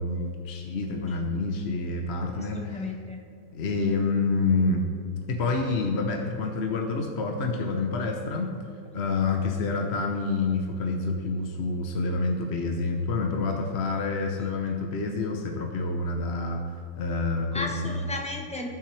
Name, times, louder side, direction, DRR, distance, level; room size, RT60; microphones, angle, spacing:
voice 1, 0.0-2.9 3.5-4.9 5.3-8.5 8.9-16.6 17.0-18.0, left 3 dB, 45° left, 3 dB, 0.9 m, -28 dB
voice 2, 2.3-3.2 17.5-18.7, left 2 dB, 10° left, 1 dB, 0.4 m, -34 dB
18.0 x 7.3 x 3.3 m, 2.4 s
omnidirectional pair, 2.0 m